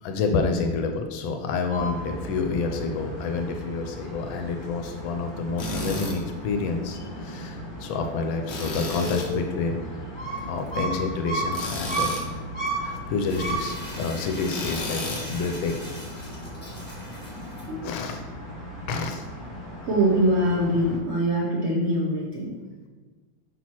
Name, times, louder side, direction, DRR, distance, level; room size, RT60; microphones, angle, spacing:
voice 1, 0.0-10.0 10.5-12.2 12.8-16.0 17.8-18.2 18.9-19.3, left 4 dB, 85° left, 5 dB, 1.4 m, -29 dB
sound 1, 1.7-21.0, right 1 dB, 25° left, 1.6 m, -35 dB
Tools, 5.6-6.2 8.5-9.3 11.5-12.3 14.5-15.3, left 2 dB, 45° left, 1.0 m, -32 dB
Crumpling crinkling, 13.2-17.6, equal, 5° left, 1.2 m, -41 dB
voice 2, 19.8-22.5, right 1 dB, 75° right, -3 dB, 0.6 m, -23 dB
6.0 x 5.9 x 2.9 m, 1.4 s
omnidirectional pair, 2.1 m